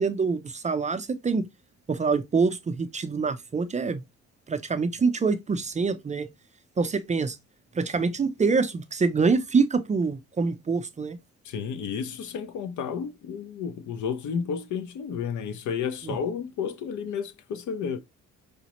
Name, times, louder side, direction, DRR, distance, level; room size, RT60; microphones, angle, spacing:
voice 1, 0.0-1.5 1.9-4.0 4.5-6.3 6.8-7.4 7.7-11.2 16.0-16.2, right 4 dB, 25° right, 0.4 m, -25 dB
voice 2, 11.4-18.0, left 6 dB, 75° left, 0.6 m, -32 dB
4.9 x 2.0 x 2.9 m
cardioid pair, 90°, 30 cm